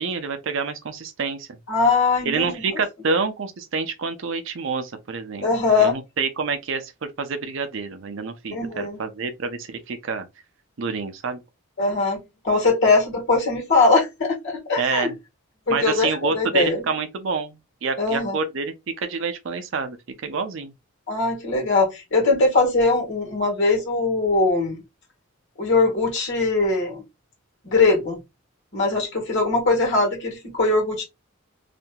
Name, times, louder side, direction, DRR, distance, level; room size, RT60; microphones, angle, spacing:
voice 1, 0.0-1.6 2.2-5.5 5.8-6.9 7.2-10.3 10.8-11.4 14.8-15.2 15.7-18.7 19.0-20.0 20.2-20.7, right 4 dB, 60° right, 0.5 m, -27 dB
voice 2, 1.7-2.8 5.4-6.0 8.5-9.0 11.8-15.1 15.7-16.9 18.0-18.4 21.1-24.8 25.6-27.0 27.6-28.2 28.7-31.0, left 3 dB, 55° left, 1.4 m, -21 dB
2.8 x 2.5 x 2.2 m
head